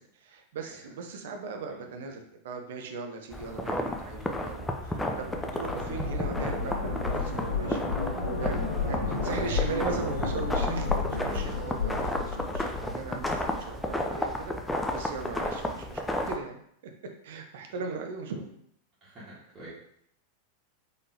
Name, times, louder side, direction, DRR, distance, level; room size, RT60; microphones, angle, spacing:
voice 1, 0.0-7.8 8.4-8.6 8.9-16.6 17.2-18.5, right 4 dB, 55° right, 3 dB, 0.6 m, -39 dB
sound 1, 3.3-16.4, left 1 dB, 5° left, 0.4 m, -33 dB
sound 2, 4.2-13.5, left 4 dB, 60° left, 1.5 m, -32 dB
voice 2, 9.2-9.6 15.2-15.4 19.0-19.7, right 1 dB, 25° right, -11 dB, 1.6 m, -47 dB
4.0 x 3.3 x 2.8 m, 0.69 s
figure-of-eight pair, 90°, 0 cm